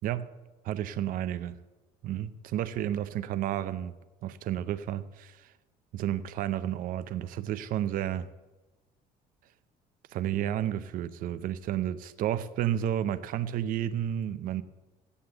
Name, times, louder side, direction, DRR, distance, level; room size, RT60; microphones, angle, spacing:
voice 1, 0.0-0.3 0.6-1.5 2.0-3.9 4.2-5.5 5.9-8.3 10.1-14.6, right 11 dB, 65° right, 0.6 m, -31 dB
8.5 x 7.7 x 7.9 m
cardioid pair, 125°, 16 cm